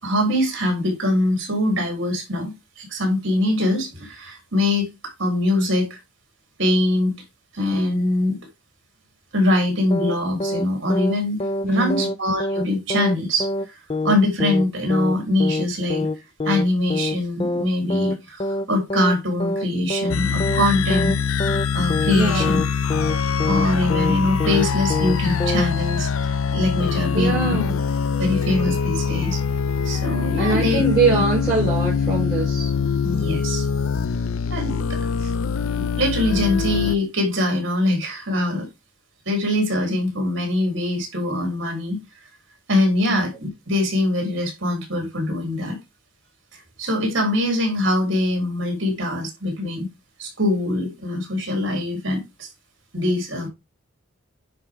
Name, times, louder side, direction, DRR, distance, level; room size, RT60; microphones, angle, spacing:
voice 1, 0.0-4.9 5.2-6.0 6.6-7.1 7.5-8.4 9.3-13.8 14.0-16.1 16.4-21.1 21.7-22.6 23.5-27.6 28.2-29.4 29.8-31.2 33.0-33.7 34.5-35.0 35.7-38.7 39.3-42.0 42.7-45.8 46.5-49.9 50.2-52.5 52.9-53.5, left 1 dB, 60° right, 4.0 m, -23 dB
sound 1, 9.9-10.2 10.4-10.7 10.9-11.2 11.4-11.7 11.9-12.2 12.4-12.7 12.9-13.2 13.4-13.7 13.9-14.2 14.4-14.7 14.9-15.2 15.4-15.7 15.9-16.2 16.4-16.7 16.9-17.2 17.4-17.7 17.9-18.2 18.4-18.7 18.9-19.2 19.4-19.7 19.9-20.2 20.4-20.7 20.9-21.2 21.4-21.7 21.9-22.2 22.4-22.7 22.9-23.2 23.4-23.7 23.9-24.2 24.4-24.7 24.9-25.2 25.4-25.7, left 2 dB, 25° left, 0.5 m, -25 dB
voice 2, 11.6-12.1 22.1-22.6 27.1-27.8 30.4-32.7 35.2-35.3 43.1-43.2, right 3 dB, 15° right, 4.3 m, -22 dB
sound 2, 20.1-36.9, left 6 dB, 80° left, 0.6 m, -23 dB
10.0 x 4.9 x 3.8 m
head